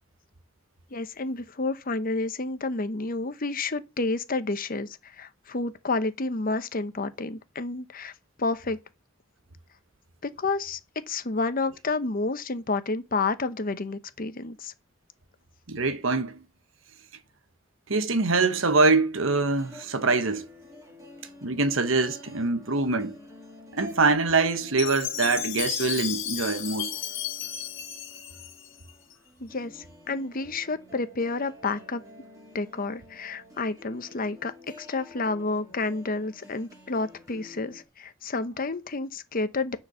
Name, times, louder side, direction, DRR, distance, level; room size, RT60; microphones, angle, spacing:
voice 1, 0.9-8.1 8.4-8.8 10.2-10.8 11.1-14.7 29.4-32.0 32.5-34.5 34.8-39.8, left 3 dB, 45° left, 0.9 m, -30 dB
voice 2, 15.7-16.4 17.9-20.5 21.4-23.2 23.7-26.9, right 3 dB, 75° right, 1.2 m, -24 dB
sound 1, 19.3-37.8, left 1 dB, 15° right, 2.7 m, -49 dB
Chime, 24.8-29.1, left 10 dB, 70° left, 1.9 m, -33 dB
10.0 x 4.7 x 6.8 m
head